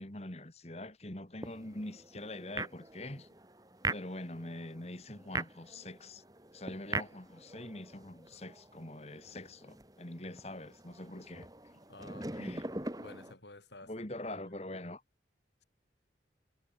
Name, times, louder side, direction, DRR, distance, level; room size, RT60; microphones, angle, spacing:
voice 1, 0.0-3.3 3.9-6.2 6.5-11.8 12.2-12.7 13.9-15.0, left 1 dB, 35° left, 2.3 m, -44 dB
sound 1, 1.4-13.3, right 2 dB, 20° right, 3.0 m, -43 dB
voice 2, 11.9-12.6 13.0-14.1, left 2 dB, 70° left, 6.7 m, -52 dB
head